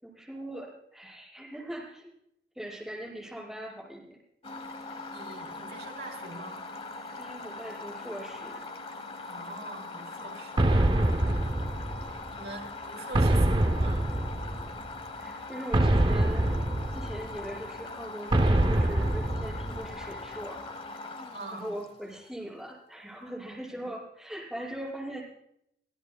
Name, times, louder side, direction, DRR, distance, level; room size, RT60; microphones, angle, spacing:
voice 1, 0.0-2.1 2.6-4.2 7.2-8.6 15.2-16.5 16.9-20.8 21.5-25.2, right 1 dB, ahead, -6 dB, 5.8 m, -40 dB
sound 1, 4.4-22.4, left 3 dB, 30° left, 1.2 m, -41 dB
voice 2, 5.1-6.6 9.3-10.6 10.9-11.5 12.0-14.1 21.3-21.7 23.7-23.9, right 2 dB, 65° right, 0 dB, 5.3 m, -44 dB
sound 2, 10.6-12.3 13.1-14.9 15.7-17.5 18.3-20.1, right 1 dB, 25° right, 0.5 m, -25 dB
26.0 x 16.0 x 2.3 m, 0.74 s
head